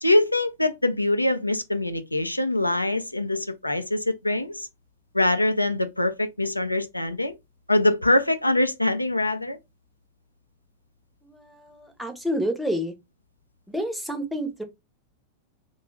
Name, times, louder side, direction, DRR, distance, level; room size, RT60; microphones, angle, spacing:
voice 1, 0.0-4.7 5.1-7.3 7.7-9.6, left 1 dB, 85° left, 0.3 m, -23 dB
voice 2, 11.2-12.9 13.7-14.6, equal, ahead, 0.6 m, -29 dB
2.4 x 2.2 x 3.1 m
figure-of-eight pair, 90°, 0 cm